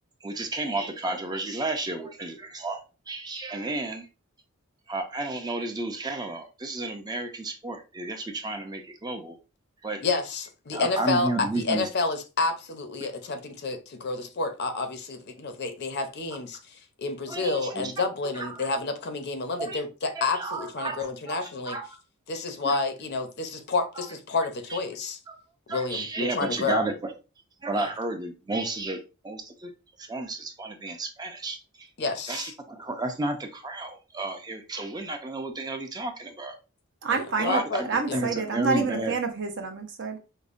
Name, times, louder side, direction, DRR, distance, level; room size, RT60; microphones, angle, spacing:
voice 1, 0.2-4.1 4.9-9.4 9.8-10.0 10.7-11.9 17.3-18.7 19.6-19.8 20.1-22.0 22.6-22.8 24.0-24.1 24.7-24.8 25.3-25.4 25.7-27.1 27.6-29.7 30.0-31.9 32.3-36.6 37.4-39.1, right 2 dB, 20° right, 0.5 m, -32 dB
voice 2, 10.0-11.3 11.6-21.8 22.3-25.2 25.7-26.8 27.7-27.8 32.0-32.5 37.1-38.2, left 3 dB, 50° left, 0.6 m, -30 dB
voice 3, 37.0-40.2, right 4 dB, 55° right, 0.7 m, -28 dB
5.2 x 2.1 x 2.5 m
head